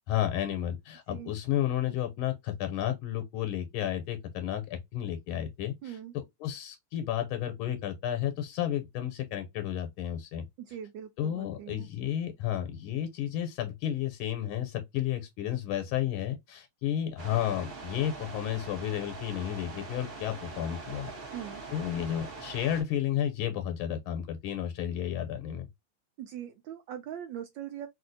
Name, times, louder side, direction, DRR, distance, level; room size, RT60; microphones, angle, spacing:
voice 1, 0.1-10.5 11.2-21.1 21.7-25.7, left 11 dB, 85° left, 1.5 m, -32 dB
voice 2, 5.8-6.1 10.6-11.9 21.3-21.6 26.2-27.9, right 10 dB, 75° right, 1.1 m, -41 dB
sound 1, 17.2-22.8, right 3 dB, 45° right, 0.7 m, -43 dB
3.2 x 2.7 x 2.5 m
omnidirectional pair, 2.3 m